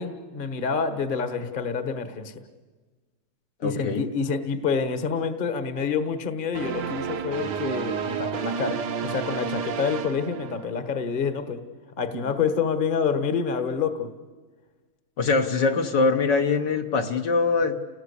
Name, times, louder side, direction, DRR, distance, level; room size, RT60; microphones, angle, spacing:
voice 1, 0.0-2.4 3.6-11.6 12.0-14.1, left 6 dB, 30° left, 10 dB, 1.3 m, -27 dB
voice 2, 3.6-4.1 15.2-17.8, left 4 dB, 60° left, 5 dB, 1.7 m, -23 dB
sound 1, 6.5-11.0, right 7 dB, 60° right, 1.5 m, -31 dB
30.0 x 19.0 x 8.4 m, 1.4 s
omnidirectional pair, 2.3 m